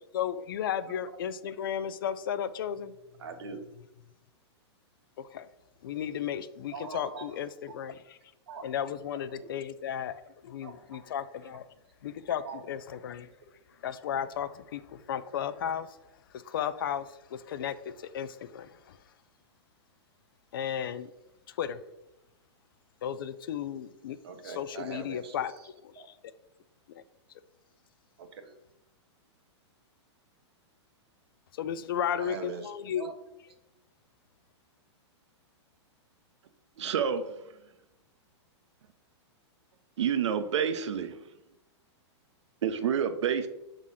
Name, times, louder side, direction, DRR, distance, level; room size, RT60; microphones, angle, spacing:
voice 1, 0.1-2.9 5.2-5.5 5.8-8.0 8.6-11.6 12.0-13.3 13.8-15.9 16.4-19.0 20.5-21.1 21.5-21.8 23.0-24.2 24.6-25.5 25.8-26.0 26.9-27.0 31.5-33.1, left 9 dB, 50° left, 14 dB, 0.4 m, -34 dB
voice 2, 3.2-3.7 6.7-7.4 7.7-7.8 8.5-8.7 9.4-9.5 10.6-11.1 11.4-11.6 12.4-12.6 12.9-13.0 24.2-25.7 26.0-26.1 28.2-28.6 32.2-33.1 33.5-33.6, right 5 dB, 60° right, 4 dB, 1.2 m, -43 dB
voice 3, 36.8-37.3 40.0-41.2 42.6-43.5, right 8 dB, 75° right, 10 dB, 0.7 m, -28 dB
6.2 x 3.8 x 5.7 m, 0.91 s
supercardioid pair, 175°, 15 cm